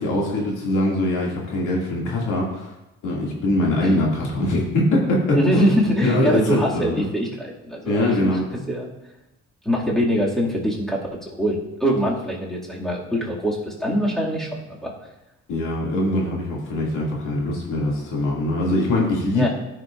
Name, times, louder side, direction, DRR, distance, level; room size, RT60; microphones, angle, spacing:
voice 1, 0.0-2.7 3.0-5.7 6.0-7.1 7.8-8.4 15.5-19.5, left 1 dB, 80° left, -3 dB, 2.4 m, -22 dB
voice 2, 5.3-8.4 8.7-8.9 9.6-11.0 11.3-14.9 19.3-19.5, equal, ahead, -4 dB, 2.3 m, -23 dB
13.5 x 6.4 x 2.5 m, 0.95 s
cardioid pair, 90°, 30 cm